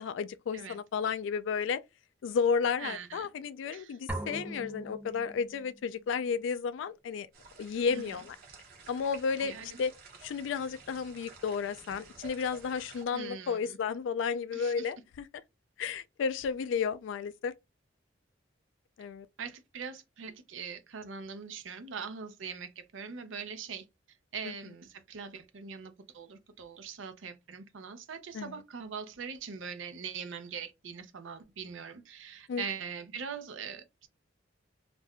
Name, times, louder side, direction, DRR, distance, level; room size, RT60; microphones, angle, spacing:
voice 1, 0.0-1.8 2.2-7.3 7.6-8.4 8.9-9.9 10.2-15.3 15.8-17.5 19.0-19.3 24.4-24.5 28.3-28.5 32.5-32.6, left 6 dB, 75° left, 0.3 m, -32 dB
voice 2, 2.8-3.3 3.7-4.0 7.9-8.2 9.4-9.8 13.1-13.8 14.5-14.9 19.4-23.8 24.3-34.1, right 6 dB, 85° right, 0.6 m, -42 dB
sound 1, 4.1-5.9, right 1 dB, 5° right, 0.4 m, -40 dB
sound 2, 7.3-13.0, right 4 dB, 50° right, 0.8 m, -52 dB
2.5 x 2.2 x 3.5 m
head